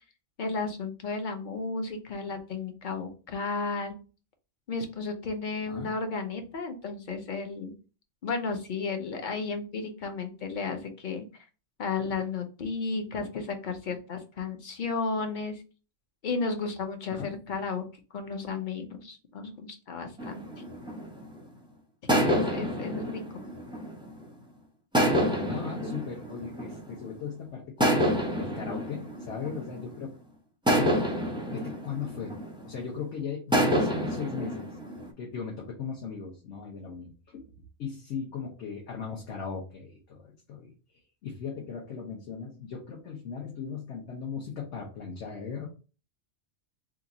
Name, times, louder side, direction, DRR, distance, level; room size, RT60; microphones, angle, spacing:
voice 1, 0.4-3.9 4.7-7.7 8.2-11.3 11.8-15.6 16.2-17.8 18.1-20.4 22.1-23.2, left 4 dB, 50° left, 5 dB, 0.7 m, -33 dB
sound 1, 20.2-21.5 22.1-24.3 24.9-27.1 27.8-30.1 30.7-32.9 33.5-35.1, equal, 5° right, 0.4 m, -28 dB
voice 2, 25.4-30.1 30.7-31.0 31.5-32.4 32.6-34.7 35.2-37.4 37.8-40.7 41.2-45.7, left 6 dB, 75° left, -1 dB, 1.1 m, -38 dB
2.8 x 2.4 x 3.7 m, 0.34 s
omnidirectional pair, 1.2 m